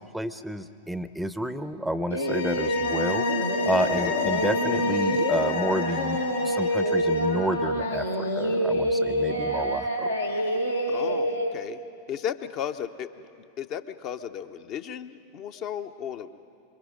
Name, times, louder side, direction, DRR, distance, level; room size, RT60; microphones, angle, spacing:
voice 1, 0.0-3.3 3.6-10.1, right 1 dB, ahead, 13 dB, 0.7 m, -30 dB
Singing, 2.1-11.5, equal, 80° left, 1.8 m, -26 dB
sound 1, 2.2-7.4, left 6 dB, 65° left, 4.3 m, -33 dB
voice 2, 10.9-11.8 12.1-13.1 13.6-16.3, left 9 dB, 40° left, 9 dB, 0.8 m, -34 dB
27.0 x 23.0 x 5.2 m, 2.5 s
figure-of-eight pair, 90°, 0 cm